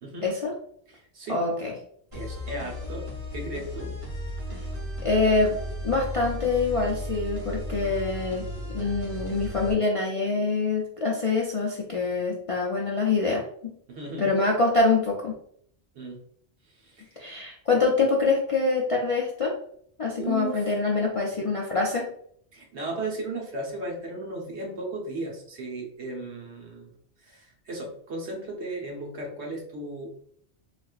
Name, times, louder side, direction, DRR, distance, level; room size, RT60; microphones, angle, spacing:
voice 1, 0.2-0.5 1.3-1.7 4.5-4.6 5.0-5.6 5.8-8.4 8.7-13.4 14.2-15.3 17.2-19.6 20.0-22.1, left 3 dB, 50° left, -2 dB, 0.4 m, -25 dB
voice 2, 0.9-1.4 2.1-3.1 3.3-3.9 13.9-14.3 15.9-16.2 16.6-17.3 20.2-20.8 22.5-26.9 27.2-30.1, right 2 dB, 75° right, -1 dB, 1.2 m, -36 dB
sound 1, 2.1-9.7, equal, 25° right, 1.5 m, -35 dB
4.1 x 2.4 x 2.4 m, 0.65 s
omnidirectional pair, 1.2 m